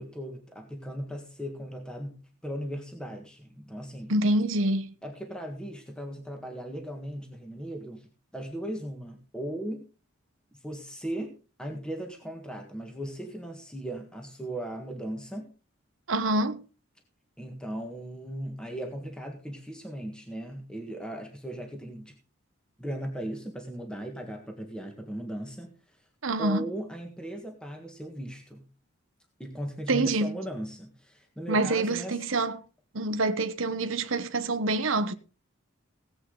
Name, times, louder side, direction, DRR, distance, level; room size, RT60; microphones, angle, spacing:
voice 1, 0.0-4.1 5.0-8.1 8.3-9.8 10.6-15.5 17.4-22.1 22.8-26.0 26.4-28.7 29.4-32.2, right 1 dB, 5° left, 1.6 m, -37 dB
voice 2, 4.1-4.9 16.1-16.6 26.2-26.7 29.9-30.4 31.5-32.6 32.9-35.1, right 2 dB, 70° right, 1.0 m, -26 dB
17.5 x 8.3 x 3.9 m
head